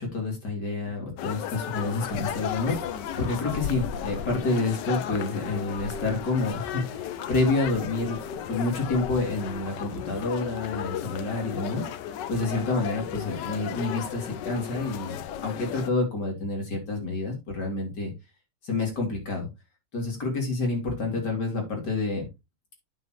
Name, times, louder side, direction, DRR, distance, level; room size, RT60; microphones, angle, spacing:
voice 1, 0.0-8.2 8.5-11.9 12.3-18.1 18.6-19.5 19.9-22.3, left 3 dB, 50° left, 1 dB, 3.6 m, -28 dB
sound 1, 1.2-15.9, left 9 dB, 65° left, 1.2 m, -35 dB
8.8 x 7.3 x 3.1 m, 0.23 s
omnidirectional pair, 2.3 m